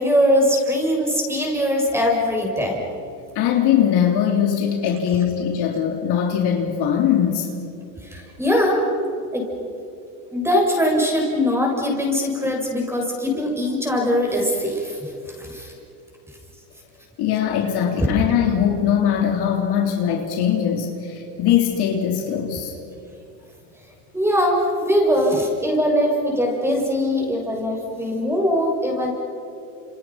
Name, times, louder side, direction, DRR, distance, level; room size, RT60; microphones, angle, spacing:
voice 1, 0.0-2.8 8.0-8.9 9.3-9.5 10.3-15.7 18.0-18.1 24.1-29.1, equal, 5° right, 0 dB, 6.9 m, -21 dB
voice 2, 3.4-7.5 17.2-22.7, left 9 dB, 50° left, 2 dB, 3.5 m, -21 dB
30.0 x 28.5 x 5.9 m, 2.7 s
supercardioid pair, 115°, 50 cm